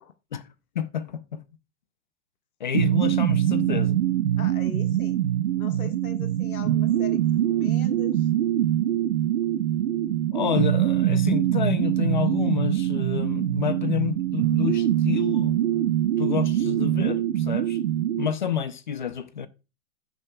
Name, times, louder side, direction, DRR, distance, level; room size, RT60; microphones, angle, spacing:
voice 1, 0.8-1.4 2.6-4.0 10.3-15.6 16.2-17.8 18.2-19.5, left 8 dB, 35° left, 0.4 m, -29 dB
sound 1, 2.7-18.3, right 12 dB, 55° right, 0.9 m, -23 dB
voice 2, 4.4-5.2 5.5-7.2 7.5-8.3, left 7 dB, 75° left, 1.7 m, -41 dB
16.0 x 6.5 x 2.2 m
hypercardioid pair, 165°, 43 cm